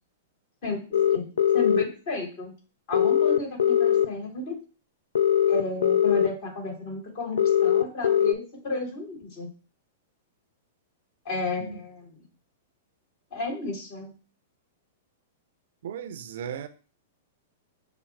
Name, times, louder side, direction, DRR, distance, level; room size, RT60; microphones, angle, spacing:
voice 1, 0.6-1.3 1.5-2.5 2.9-4.6 5.5-9.5 11.2-12.1 13.3-14.1, left 2 dB, 55° left, 2.4 m, -33 dB
sound 1, 0.9-1.8 2.9-4.1 5.2-6.3 7.4-8.3, left 9 dB, 80° left, 0.3 m, -21 dB
voice 2, 15.8-16.7, right 8 dB, 65° right, 0.5 m, -36 dB
5.7 x 2.0 x 4.3 m
hypercardioid pair, 115°, 0 cm